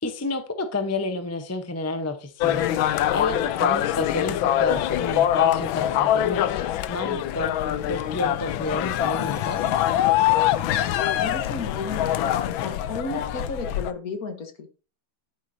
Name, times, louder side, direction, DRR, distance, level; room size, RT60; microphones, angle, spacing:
voice 1, 0.0-2.7 3.1-7.5 7.8-9.7, left 2 dB, 15° left, 7 dB, 0.5 m, -30 dB
sound 1, 2.4-13.9, left 12 dB, 85° left, 1.4 m, -24 dB
voice 2, 11.2-14.7, left 3 dB, 50° left, 7 dB, 1.7 m, -33 dB
10.5 x 9.4 x 2.8 m, 0.34 s
omnidirectional pair, 2.1 m